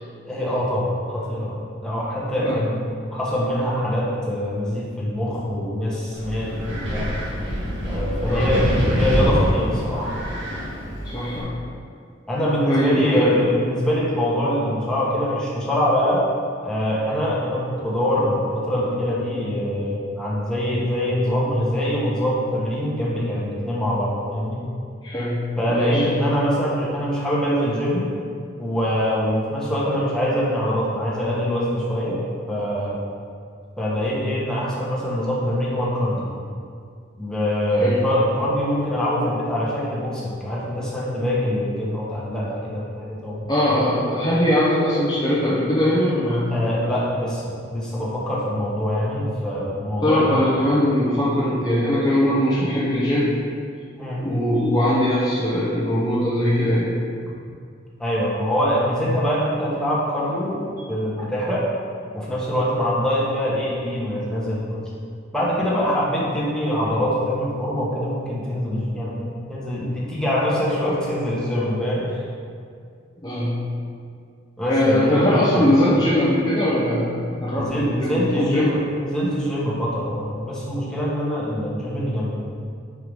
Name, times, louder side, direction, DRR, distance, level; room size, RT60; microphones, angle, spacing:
voice 1, 0.2-2.8 3.1-7.1 7.8-10.1 12.3-16.2 16.6-24.6 25.6-28.0 28.6-32.2 32.5-33.0 33.8-36.3 37.2-43.4 46.5-50.4 54.0-54.3 57.3-57.4 58.0-60.6 60.9-61.7 62.1-64.9 65.3-72.3 74.6-75.7 77.6-82.3, equal, 5° left, -7 dB, 1.2 m, -24 dB
Wind, 6.1-11.4, equal, 85° right, 1.6 m, -25 dB
voice 2, 8.3-8.7 11.0-11.5 12.7-13.4 25.0-25.4 25.7-26.0 37.8-38.0 43.5-46.5 50.0-53.3 54.2-56.9 73.2-73.6 74.7-78.7, left 1 dB, 20° left, -8 dB, 0.8 m, -21 dB
4.8 x 4.7 x 5.2 m, 2.2 s
head